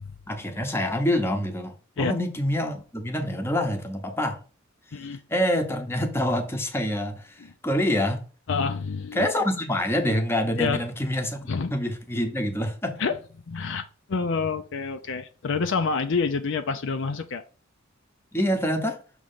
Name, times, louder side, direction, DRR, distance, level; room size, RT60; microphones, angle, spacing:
voice 1, 0.3-4.4 5.3-7.3 7.6-8.2 9.1-11.4 11.7-13.0 18.3-19.0, left 1 dB, 10° left, 0.9 m, -26 dB
voice 2, 8.5-9.3 10.6-10.8 11.5-11.7 13.0-13.2 13.5-17.4, left 5 dB, 65° left, 0.5 m, -27 dB
6.4 x 3.0 x 5.5 m
head